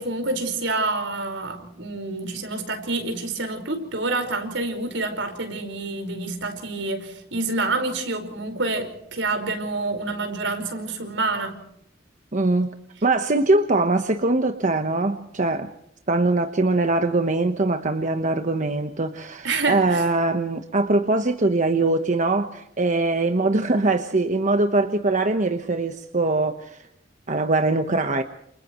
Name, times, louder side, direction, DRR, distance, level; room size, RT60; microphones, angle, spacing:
voice 1, 0.0-11.6 19.4-20.0, right 2 dB, 75° right, 6 dB, 4.9 m, -27 dB
voice 2, 12.3-12.7 13.0-15.7 16.1-26.8 27.3-28.2, right 2 dB, 40° right, 6 dB, 1.2 m, -22 dB
29.0 x 29.0 x 3.1 m, 0.75 s
head